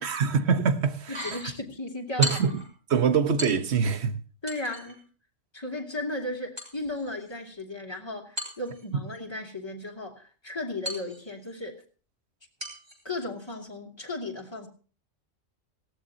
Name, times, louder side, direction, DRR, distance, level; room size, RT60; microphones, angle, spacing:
voice 1, 0.0-1.4 2.2-2.6 2.9-4.2, right 6 dB, 55° right, 1.4 m, -24 dB
sound 1, 1.0-1.5 2.2-2.7 3.4-4.0 4.5-5.0 6.6-7.6 8.4-9.2 10.8-11.6 12.6-13.0 13.4-13.6, left 1 dB, 20° right, 4.7 m, -36 dB
voice 2, 1.1-2.6 4.4-5.0 5.5-11.8 13.0-14.7, left 2 dB, 20° left, 2.8 m, -35 dB
18.5 x 16.5 x 2.8 m
omnidirectional pair, 1.3 m